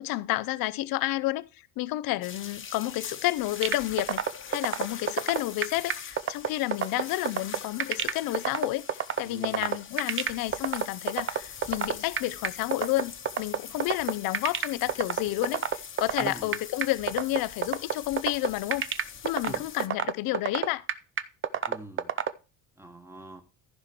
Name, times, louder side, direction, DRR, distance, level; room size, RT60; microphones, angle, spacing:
voice 1, 0.0-1.5 1.8-18.9 19.2-20.8, left 17 dB, 65° left, 0.6 m, -30 dB
sound 1, 2.2-19.9, left 7 dB, 35° left, 1.2 m, -43 dB
sound 2, 3.6-22.3, right 9 dB, 35° right, 0.7 m, -27 dB
voice 2, 9.2-9.8 16.2-16.6 19.4-19.7 21.6-22.1 22.8-23.4, right 1 dB, 5° right, 1.3 m, -43 dB
14.5 x 4.9 x 4.4 m
cardioid pair, 120°, 38 cm